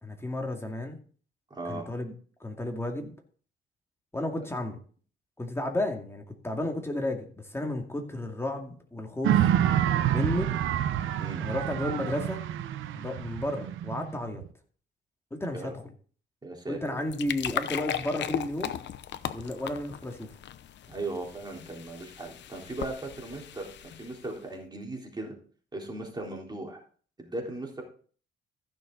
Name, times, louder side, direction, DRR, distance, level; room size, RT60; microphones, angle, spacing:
voice 1, 0.0-1.0 1.7-2.1 2.4-3.1 4.1-4.8 5.4-9.4 10.1-10.5 11.4-12.4 12.9-14.4 15.3-15.8 16.7-18.7 19.3-20.3, left 1 dB, 10° left, 3 dB, 2.3 m, -32 dB
voice 2, 1.5-1.9 11.2-11.5 15.5-15.8 16.4-16.9 20.9-23.7 24.0-25.3 25.7-26.8 27.2-27.8, right 2 dB, 20° right, 0 dB, 3.7 m, -37 dB
sound 1, 9.2-14.5, right 11 dB, 80° right, 0.9 m, -27 dB
sound 2, 16.8-24.4, left 10 dB, 65° left, 0.8 m, -37 dB
15.0 x 6.6 x 4.0 m, 0.43 s
cardioid pair, 90°, 20 cm